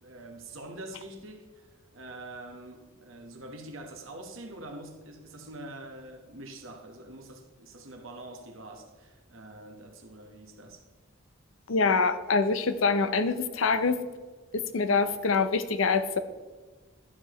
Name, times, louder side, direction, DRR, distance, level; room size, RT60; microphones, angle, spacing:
voice 1, 0.0-1.7 1.9-10.8, right 1 dB, 70° right, 1.4 m, -45 dB
voice 2, 11.7-14.0 14.5-16.2, left 4 dB, 70° left, 0.6 m, -25 dB
12.0 x 6.8 x 3.1 m
head